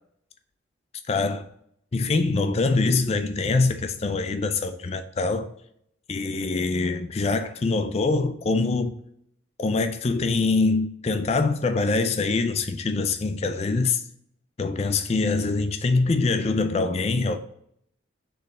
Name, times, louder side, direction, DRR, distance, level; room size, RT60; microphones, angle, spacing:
voice 1, 1.1-1.4 1.9-5.5 6.1-8.9 9.6-14.0 14.6-17.4, left 3 dB, 30° left, 0.4 m, -24 dB
4.2 x 3.2 x 3.6 m
head